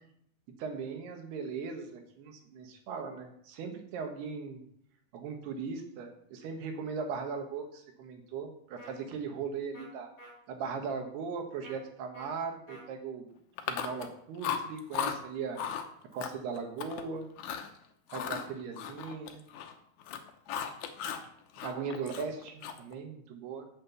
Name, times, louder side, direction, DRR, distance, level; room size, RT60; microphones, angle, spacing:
voice 1, 0.6-4.6 5.1-10.1 10.5-13.3 13.7-15.6 16.1-17.3 18.1-19.4 21.6-23.7, right 5 dB, 75° right, 5 dB, 3.4 m, -38 dB
sound 1, 8.8-8.9 9.7-9.9 10.2-10.3 11.6-11.8 12.1-12.3 12.7-12.8, right 1 dB, 10° left, 4.6 m, -50 dB
Chewing mastication, 13.6-14.1 14.4-15.2 15.6-15.9 16.2-17.0 17.4-17.7 18.1-19.7 20.0-21.3 21.6-22.9, left 8 dB, 85° left, 1.6 m, -36 dB
8.6 x 7.5 x 7.0 m, 0.68 s
omnidirectional pair, 4.7 m